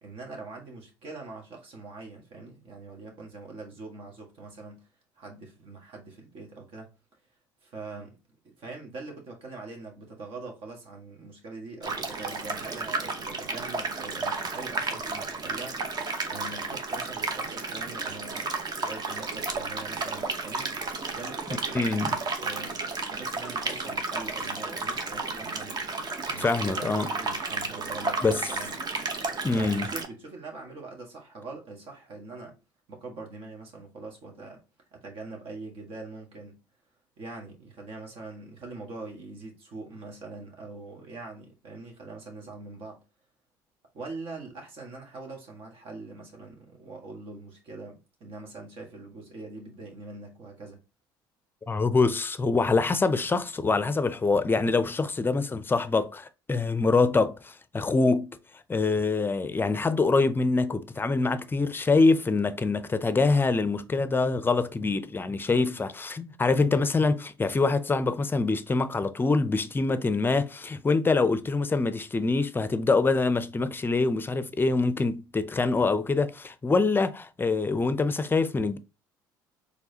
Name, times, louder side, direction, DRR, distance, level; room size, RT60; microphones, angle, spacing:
voice 1, 0.0-4.8 5.1-6.9 7.6-8.2 8.4-15.8 16.3-18.5 18.8-20.7 21.1-22.8 23.1-25.8 26.2-28.8 29.5-32.6 32.9-34.6 34.9-36.6 37.2-43.0 43.9-50.8, right 3 dB, 60° right, 1.6 m, -43 dB
sound 1, 11.8-30.1, right 3 dB, 40° right, 1.0 m, -32 dB
voice 2, 21.7-22.1 26.4-27.1 28.2-28.4 29.4-29.9 51.7-58.4 58.7-78.8, left 3 dB, 20° left, 0.5 m, -25 dB
4.6 x 3.4 x 2.8 m
hypercardioid pair, 70°, 11 cm